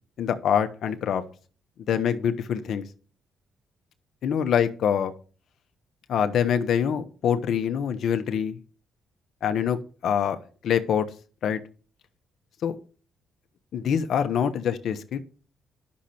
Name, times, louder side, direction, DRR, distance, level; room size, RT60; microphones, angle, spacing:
voice 1, 0.2-1.2 1.9-2.9 4.2-5.1 6.1-8.6 9.4-10.4 10.6-11.1 11.4-11.6 12.6-12.8 13.7-15.2, left 8 dB, 65° left, 8 dB, 1.1 m, -25 dB
10.0 x 6.5 x 4.4 m, 0.39 s
cardioid pair, 90°, 0 cm